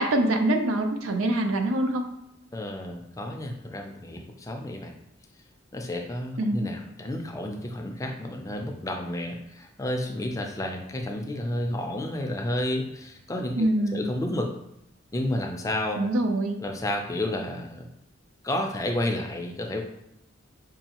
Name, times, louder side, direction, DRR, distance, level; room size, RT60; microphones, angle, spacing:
voice 1, 0.0-2.0 6.4-6.7 13.6-14.1 16.0-16.6, right 1 dB, 80° right, 4 dB, 0.6 m, -24 dB
voice 2, 2.5-4.9 5.7-14.5 15.1-16.0 16.6-17.9 18.4-19.8, left 1 dB, 15° left, 2 dB, 0.4 m, -31 dB
5.3 x 2.3 x 2.9 m, 0.83 s
head